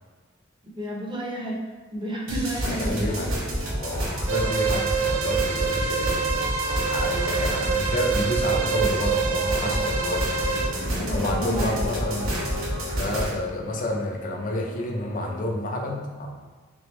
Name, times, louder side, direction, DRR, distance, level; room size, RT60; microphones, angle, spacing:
voice 1, 0.6-3.1 9.6-9.8 10.9-11.9, right 1 dB, 25° right, -2 dB, 0.7 m, -32 dB
sound 1, 2.3-13.3, right 1 dB, 85° right, 1.0 m, -29 dB
voice 2, 2.6-3.4 3.7-10.5 11.1-12.4 12.9-16.3, left 1 dB, 40° left, 1 dB, 0.5 m, -30 dB
sound 2, 4.3-10.7, right 6 dB, 70° right, 0.4 m, -26 dB
sound 3, 8.3-15.4, left 4 dB, 60° left, 1.1 m, -38 dB
3.4 x 3.4 x 3.1 m, 1.4 s
head